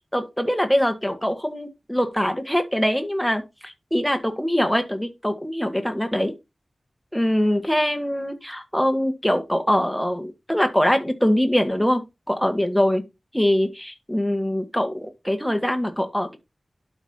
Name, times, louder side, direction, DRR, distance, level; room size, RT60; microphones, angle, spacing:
voice 1, 0.1-6.3 7.1-12.0 12.3-13.0 13.3-16.4, equal, 5° left, 1.7 m, -23 dB
12.0 x 5.1 x 2.8 m
wide cardioid pair, 80°, 0 cm